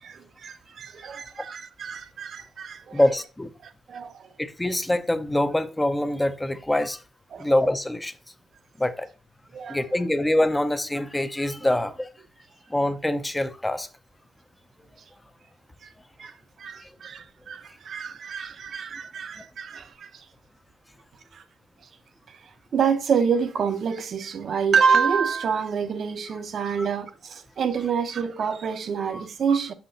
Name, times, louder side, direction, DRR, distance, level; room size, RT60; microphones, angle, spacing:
voice 1, 0.0-3.0 3.6-4.3 7.3-7.5 9.5-9.8 15.8-15.9 16.2-16.3 16.6-20.3 21.3-21.4 22.3-22.4 22.7-29.7, right 6 dB, 55° right, 0.6 m, -27 dB
voice 2, 2.9-3.5 4.4-7.0 7.4-8.1 8.8-9.1 9.7-12.1 12.7-13.9 16.8-16.9 29.1-29.3, left 1 dB, 10° left, 0.6 m, -24 dB
6.7 x 5.7 x 2.6 m
cardioid pair, 90°, 0 cm